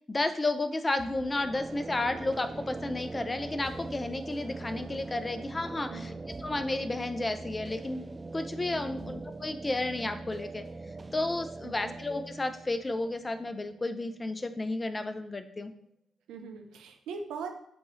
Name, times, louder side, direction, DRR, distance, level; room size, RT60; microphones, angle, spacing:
voice 1, 0.1-6.1 6.4-8.0 8.3-10.6 11.1-15.7, left 2 dB, 30° left, 9 dB, 0.7 m, -32 dB
sound 1, 1.0-14.7, right 3 dB, 30° right, 0.4 m, -42 dB
voice 2, 8.9-9.2 11.6-12.0 16.3-17.5, right 5 dB, 80° right, 4 dB, 0.8 m, -41 dB
8.3 x 3.1 x 4.0 m, 0.70 s
hypercardioid pair, 45°, 0 cm